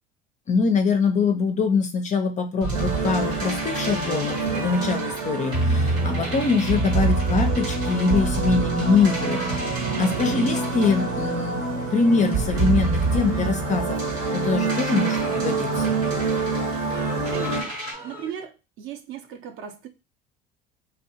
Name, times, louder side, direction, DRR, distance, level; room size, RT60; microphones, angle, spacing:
voice 1, 0.5-9.7 10.0-11.6 11.9-15.9, left 5 dB, 25° left, 7 dB, 0.4 m, -23 dB
sound 1, 2.6-18.3, equal, 5° right, 0.7 m, -42 dB
sound 2, 2.6-11.6 12.2-17.9, right 3 dB, 80° right, 1.2 m, -28 dB
sound 3, 2.7-17.6, right 3 dB, 60° right, 0.9 m, -27 dB
voice 2, 17.3-17.8 18.0-19.9, right 9 dB, 45° right, 7 dB, 0.5 m, -37 dB
2.6 x 2.1 x 2.7 m, 0.28 s
hypercardioid pair, 75°, 30 cm